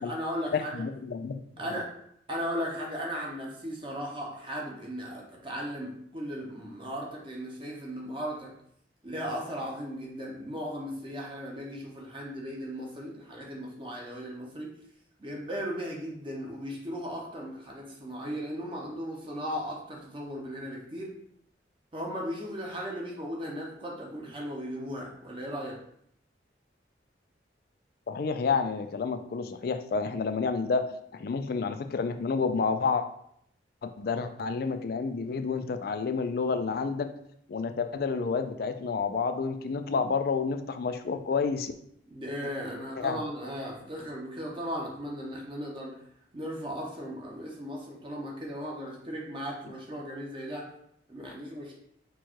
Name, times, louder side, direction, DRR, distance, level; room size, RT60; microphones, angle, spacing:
voice 1, 0.0-0.8 1.6-1.9 2.3-8.5 9.0-14.7 15.2-21.1 21.9-25.8 42.1-46.0 46.3-50.7 51.1-51.8, equal, 30° right, -2 dB, 0.8 m, -37 dB
voice 2, 0.5-1.4 28.1-30.8 31.1-33.1 33.8-37.1 37.5-41.7 43.0-43.2, left 5 dB, 55° left, 9 dB, 0.4 m, -29 dB
4.5 x 2.3 x 4.4 m, 0.70 s
head